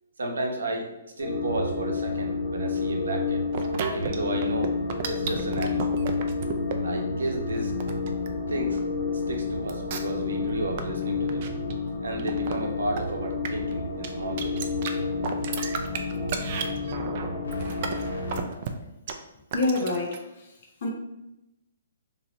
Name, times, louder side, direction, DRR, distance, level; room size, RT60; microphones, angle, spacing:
voice 1, 0.2-0.9 1.2-3.4 3.9-4.7 5.1-6.0 6.8-7.7 8.5-8.8 9.3-11.5 12.0-14.7, right 2 dB, 80° right, 1 dB, 0.8 m, -32 dB
sound 1, 1.2-18.4, left 4 dB, 90° left, 0.9 m, -30 dB
sound 2, 3.5-4.2 4.4-6.8 7.2-8.8 9.3-9.4 9.7-10.2 10.5-10.8 11.2-11.8 12.2-12.5 13.0-13.1 13.4-13.7 14.0-14.1 14.4-14.9 15.2-18.7 19.1-19.2 19.5-20.2, right 7 dB, 45° right, 0.4 m, -33 dB
voice 2, 19.5-20.2 20.8-20.9, left 2 dB, 55° left, 0 dB, 0.7 m, -26 dB
2.9 x 2.6 x 3.0 m, 0.90 s
hypercardioid pair, 140°, 0 cm